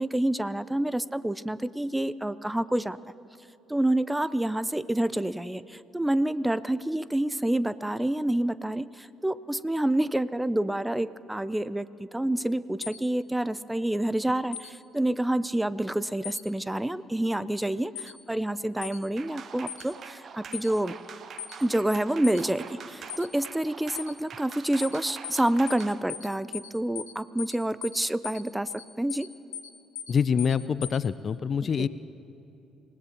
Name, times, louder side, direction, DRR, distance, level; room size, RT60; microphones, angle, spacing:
voice 1, 0.0-3.0 3.7-20.9 21.6-28.7 29.0-29.3 31.8-31.9, right 1 dB, 10° right, 17 dB, 0.5 m, -28 dB
sound 1, 12.8-13.0 14.5-14.7 16.2-16.4 18.0-18.1 18.8-19.0 19.7-19.8 20.5-20.7 21.4-21.6 22.2-22.4 23.1-23.3 24.0-24.1 24.8-25.0 25.2-25.4 25.7-25.8 26.1-26.3 26.5-26.7 27.0-27.1 27.4-27.6 27.8-28.0 28.2-28.4 28.7-28.8 29.1-29.3 29.5-29.7 30.0-30.1 30.4-30.6 30.8-31.0, left 10 dB, 85° left, 0.8 m, -38 dB
sound 2, 19.2-26.0, right 6 dB, 55° right, 0.8 m, -45 dB
voice 2, 30.1-31.9, left 6 dB, 50° left, 16 dB, 0.5 m, -25 dB
27.5 x 17.5 x 3.0 m, 2.9 s
hypercardioid pair, 50°, 0 cm